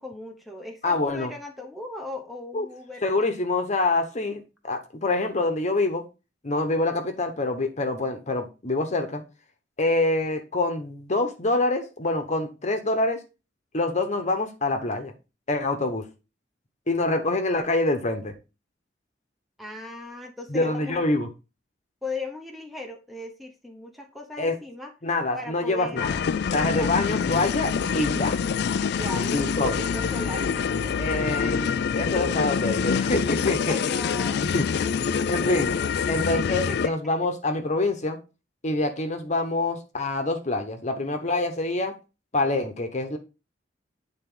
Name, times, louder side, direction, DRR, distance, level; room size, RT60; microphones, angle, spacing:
voice 1, 0.0-3.0 19.6-21.0 22.0-24.9 25.3-26.2 26.5-27.2 28.7-30.9 33.7-35.6 36.2-36.9, left 2 dB, ahead, 1 dB, 1.0 m, -38 dB
voice 2, 0.8-1.3 2.5-2.7 3.0-6.0 6.4-9.2 9.8-13.2 13.7-15.1 15.5-16.0 16.9-18.3 20.5-21.3 24.4-24.6 25.0-26.2 26.5-28.4 29.3-29.8 31.0-33.7 34.5-34.7 35.3-35.7 36.1-38.2 38.6-42.0 42.3-43.2, left 2 dB, 40° left, 6 dB, 1.1 m, -26 dB
sound 1, 26.0-36.9, left 6 dB, 60° left, 0.4 m, -26 dB
9.2 x 3.9 x 3.8 m, 0.29 s
head